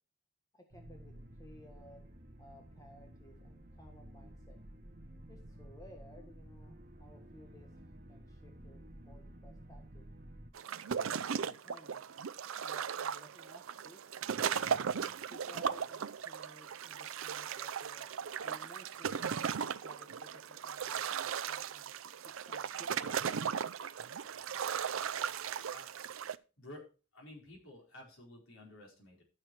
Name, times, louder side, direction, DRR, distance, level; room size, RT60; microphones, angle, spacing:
voice 1, 0.5-2.0 2.4-4.6 5.3-7.7 8.1-10.1 10.9-12.0 12.5-14.0 14.4-14.9 15.3-18.1 18.4-19.6 19.8-21.9 22.2-23.7, left 1 dB, 15° left, 3 dB, 1.6 m, -58 dB
sound 1, 0.7-10.5, right 1 dB, 45° right, 1.7 m, -53 dB
sound 2, 10.5-26.4, right 7 dB, 75° right, 0.5 m, -37 dB
voice 2, 26.6-26.9 27.1-29.2, left 1 dB, 75° left, 0 dB, 4.4 m, -52 dB
12.5 x 6.5 x 4.6 m, 0.34 s
head